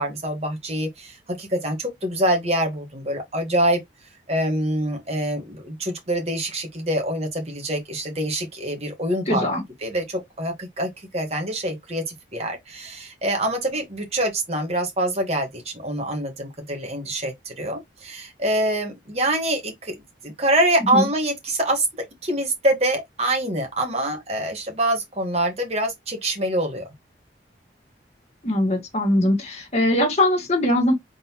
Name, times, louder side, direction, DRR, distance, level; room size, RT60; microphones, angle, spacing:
voice 1, 0.0-3.8 4.3-9.5 9.8-19.9 20.2-26.9, right 1 dB, 35° right, 1.5 m, -25 dB
voice 2, 9.3-9.6 20.9-21.1 28.4-30.9, left 1 dB, 35° left, 1.6 m, -21 dB
3.9 x 3.7 x 2.9 m
head